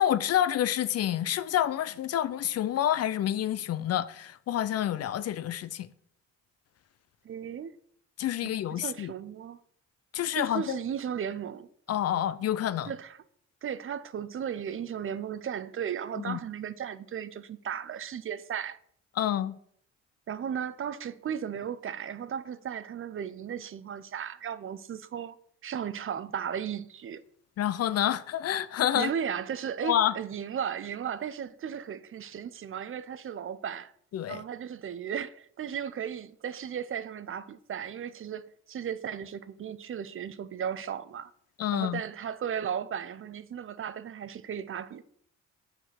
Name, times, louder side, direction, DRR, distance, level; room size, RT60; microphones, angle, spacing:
voice 1, 0.0-5.9 8.2-9.1 10.1-10.8 11.9-12.9 16.2-16.4 19.2-19.6 27.6-29.1 29.8-30.1 34.1-34.4 41.6-42.0, left 11 dB, 55° left, 0.5 m, -28 dB
voice 2, 7.2-7.8 8.4-9.6 10.3-11.7 12.9-13.2 13.6-18.8 20.3-25.4 25.6-27.2 28.9-33.9 34.3-41.3 41.7-45.0, right 8 dB, 45° right, 0.5 m, -35 dB
6.7 x 4.7 x 5.7 m
cardioid pair, 90°, 30 cm